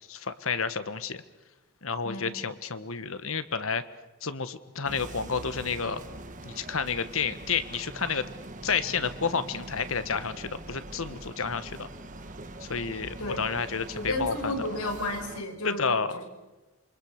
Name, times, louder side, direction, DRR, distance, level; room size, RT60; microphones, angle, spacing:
voice 1, 0.1-1.2 1.8-3.8 4.2-6.0 6.4-8.3 8.6-11.9 12.6-14.5 15.6-16.2, left 5 dB, 70° left, 12 dB, 1.4 m, -30 dB
sound 1, 4.9-15.4, right 2 dB, 35° right, 1.5 m, -43 dB
voice 2, 13.9-16.3, left 2 dB, 90° left, 3 dB, 5.7 m, -32 dB
27.5 x 24.5 x 6.6 m, 1.1 s
head